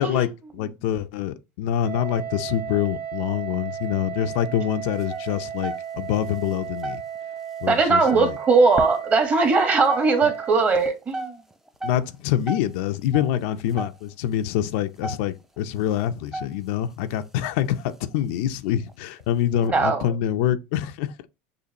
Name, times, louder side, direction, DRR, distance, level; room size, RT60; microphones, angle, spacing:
voice 1, 0.0-7.0 7.6-8.3 10.2-10.3 11.8-21.1, left 11 dB, 70° left, 0.5 m, -26 dB
Wind instrument woodwind instrument, 1.8-10.7, right 9 dB, 45° right, 2.0 m, -35 dB
sound 1, 5.0-6.1 6.5-6.6 6.8-7.4 7.8-8.6 9.0-9.2 9.6-10.5 10.9-14.3 14.7-14.8 15.0-15.6 16.1-16.9 17.4-17.6 18.1-18.2 18.7-18.9 19.4-19.7, right 2 dB, 5° right, 0.4 m, -34 dB
voice 2, 7.7-11.4 19.6-20.0, right 4 dB, 25° right, 1.2 m, -20 dB
6.7 x 2.5 x 2.9 m
supercardioid pair, 115°, 6 cm